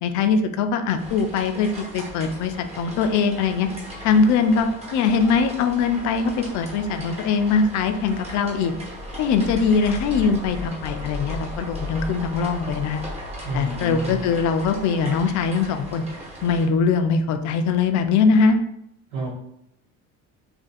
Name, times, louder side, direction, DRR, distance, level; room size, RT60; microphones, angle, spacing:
voice 1, 0.0-3.7 4.0-8.7 9.2-13.0 13.5-16.0 16.4-18.6, left 5 dB, 60° left, 7 dB, 0.5 m, -21 dB
sound 1, 1.0-16.7, equal, 20° right, 1.1 m, -38 dB
sound 2, 9.1-15.8, left 3 dB, 40° right, 0.7 m, -37 dB
voice 2, 13.4-14.2 19.1-19.3, right 2 dB, 75° right, -7 dB, 1.1 m, -30 dB
2.7 x 2.5 x 4.1 m, 0.77 s
cardioid pair, 115°, 32 cm